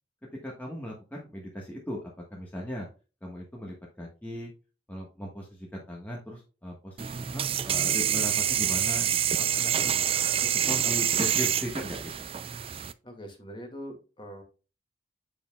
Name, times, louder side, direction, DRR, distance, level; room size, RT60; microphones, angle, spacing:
voice 1, 0.4-2.0 2.3-2.9 3.2-4.5 4.9-10.1 10.4-12.3, equal, 10° left, -3 dB, 1.4 m, -38 dB
sound 1, 7.0-12.9, right 9 dB, 30° right, 0.4 m, -27 dB
voice 2, 10.8-11.2 13.0-14.4, equal, 25° left, 3 dB, 2.1 m, -43 dB
7.6 x 6.9 x 2.3 m, 0.33 s
head